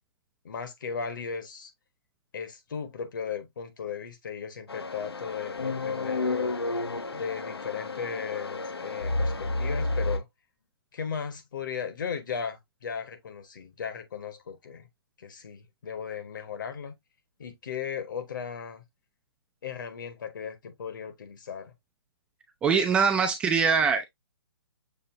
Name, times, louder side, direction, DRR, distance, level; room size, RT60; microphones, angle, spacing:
voice 1, 0.4-1.7 2.3-6.6 7.1-10.3 10.9-14.9 15.2-16.9 17.4-18.8 19.6-21.7, left 6 dB, 55° left, 1.1 m, -36 dB
sound 1, 4.7-10.2, left 2 dB, 75° left, 0.7 m, -31 dB
voice 2, 22.6-24.1, right 5 dB, 10° right, 0.3 m, -23 dB
6.8 x 2.7 x 2.6 m
figure-of-eight pair, 130°, 13 cm